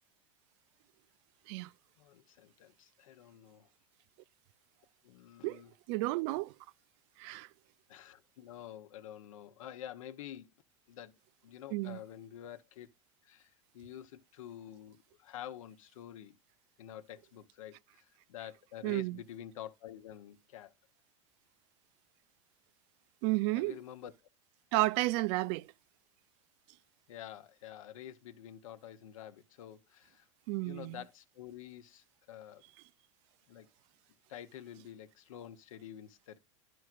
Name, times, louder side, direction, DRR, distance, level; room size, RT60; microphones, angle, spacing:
voice 1, 2.0-3.7 5.0-5.7 7.9-10.5 10.9-11.1 11.4-12.9 13.2-16.4 16.8-20.7 23.5-24.1 27.1-32.6 33.5-33.7 34.3-36.4, left 11 dB, 80° left, 0.9 m, -48 dB
voice 2, 5.9-6.5 7.2-7.5 11.7-12.0 18.8-19.2 23.2-23.7 24.7-25.7 30.5-31.0, right 20 dB, 60° right, 0.4 m, -31 dB
12.0 x 4.6 x 2.4 m
hypercardioid pair, 110°, 17 cm